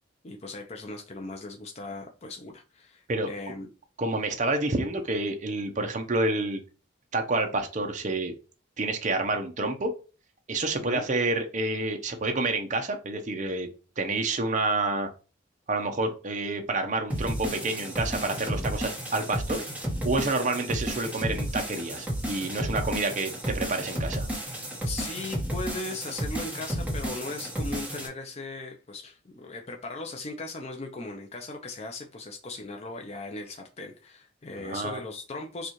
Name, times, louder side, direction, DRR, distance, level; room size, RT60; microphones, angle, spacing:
voice 1, 0.2-3.7 10.8-11.0 24.8-35.7, left 2 dB, 35° left, 3 dB, 0.5 m, -38 dB
voice 2, 4.0-6.6 7.1-8.3 8.8-9.9 10.5-13.7 14.0-15.1 15.7-19.6 20.0-24.3 34.6-35.0, right 2 dB, 40° right, 4 dB, 0.7 m, -28 dB
sound 1, 17.1-28.1, right 1 dB, 10° right, 1.1 m, -32 dB
6.7 x 2.4 x 3.0 m, 0.34 s
head